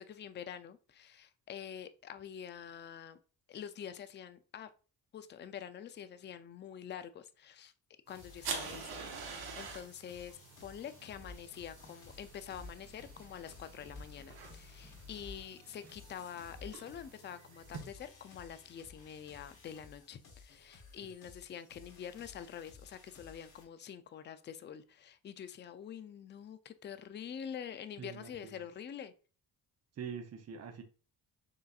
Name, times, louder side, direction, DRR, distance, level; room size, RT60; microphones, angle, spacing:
voice 1, 0.0-3.2 3.5-4.7 5.1-7.7 8.1-29.1, left 8 dB, 30° left, 0.4 m, -46 dB
sound 1, 8.1-23.6, left 4 dB, 70° left, 1.3 m, -57 dB
sound 2, 8.1-17.8, right 5 dB, 75° right, 1.1 m, -47 dB
sound 3, 10.8-16.8, left 1 dB, 5° left, 0.9 m, -55 dB
voice 2, 28.0-28.6 30.0-30.8, right 7 dB, 40° right, 0.7 m, -44 dB
6.6 x 2.6 x 2.4 m
cardioid pair, 90°, 38 cm